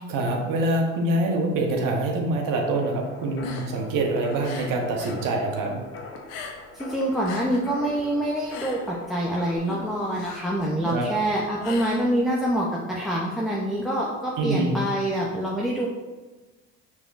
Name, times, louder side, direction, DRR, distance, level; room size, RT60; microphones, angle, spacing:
voice 1, 0.1-5.8 10.9-11.1 14.4-14.7, right 2 dB, 70° right, 1 dB, 1.0 m, -25 dB
sound 1, 2.7-9.6, left 3 dB, 40° left, 0.6 m, -43 dB
sound 2, 3.3-5.2 5.5-6.8 7.1-12.6, left 5 dB, 85° left, 0.7 m, -40 dB
voice 2, 6.7-15.9, right 1 dB, ahead, -4 dB, 0.6 m, -26 dB
5.9 x 3.5 x 2.5 m, 1.2 s
supercardioid pair, 90°, 35 cm